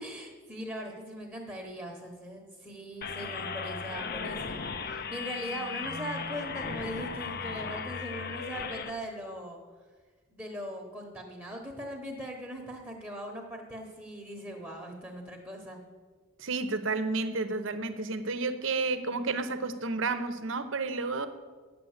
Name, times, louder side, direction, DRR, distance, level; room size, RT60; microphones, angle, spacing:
voice 1, 0.0-9.6 10.3-15.8, equal, 10° right, 1 dB, 1.0 m, -40 dB
sound 1, 3.0-8.9, left 5 dB, 45° left, 0.6 m, -36 dB
voice 2, 16.4-21.3, right 3 dB, 65° right, 11 dB, 0.8 m, -31 dB
9.3 x 7.7 x 7.2 m, 1.5 s
head